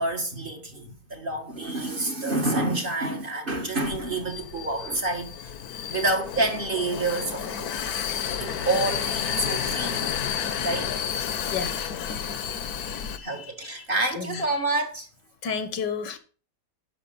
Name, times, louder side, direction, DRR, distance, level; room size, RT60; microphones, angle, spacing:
voice 1, 0.0-5.5 5.9-7.7 8.4-10.2 10.6-10.9 13.2-15.1, right 2 dB, 30° right, 1.7 m, -28 dB
Vehicle, 3.8-13.2, left 8 dB, 65° left, 1.3 m, -31 dB
voice 2, 12.8-13.7 14.1-14.4 15.4-16.2, left 6 dB, 85° left, 1.8 m, -32 dB
11.0 x 6.1 x 5.8 m
omnidirectional pair, 1.8 m